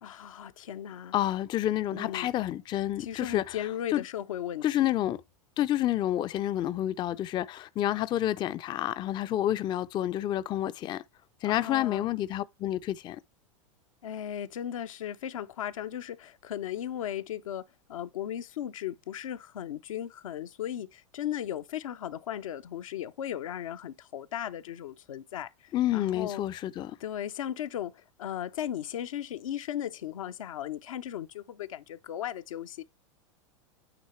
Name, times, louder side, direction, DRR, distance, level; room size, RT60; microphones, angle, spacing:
voice 1, 0.0-1.1 1.9-2.3 3.0-4.9 11.4-12.1 14.0-17.6 17.9-26.4 27.0-32.8, left 11 dB, 85° left, 0.6 m, -36 dB
voice 2, 1.1-3.6 3.9-4.0 4.6-5.2 5.6-11.0 11.4-13.2 25.7-27.0, left 13 dB, 25° left, 0.3 m, -29 dB
8.9 x 3.0 x 4.3 m
hypercardioid pair, 105°, 17 cm